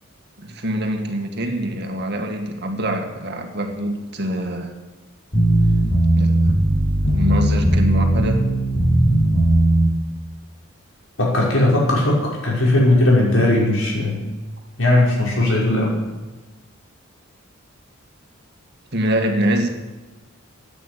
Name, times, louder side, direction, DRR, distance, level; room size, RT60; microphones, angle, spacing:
voice 1, 0.4-4.7 6.2-6.5 7.0-8.5 18.9-19.7, right 1 dB, 55° right, 4 dB, 2.0 m, -24 dB
sound 1, 5.3-9.9, right 1 dB, 35° left, 5.6 m, -17 dB
voice 2, 11.2-14.3 14.8-16.0, left 1 dB, 75° left, -4 dB, 5.8 m, -18 dB
14.0 x 9.2 x 8.4 m, 1.2 s
head